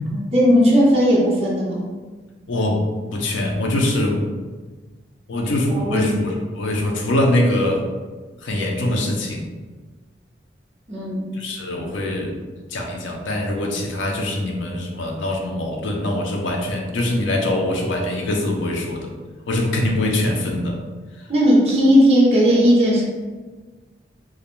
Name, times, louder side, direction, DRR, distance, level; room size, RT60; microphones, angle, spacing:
voice 1, 0.1-1.9 5.9-6.1 10.9-11.3 21.3-23.0, equal, 35° right, -6 dB, 0.5 m, -16 dB
voice 2, 2.5-4.2 5.3-7.9 8.4-9.5 11.3-12.4 12.7-19.1 19.5-20.8, left 1 dB, 85° left, 1 dB, 0.5 m, -23 dB
2.4 x 2.1 x 3.0 m, 1.3 s
head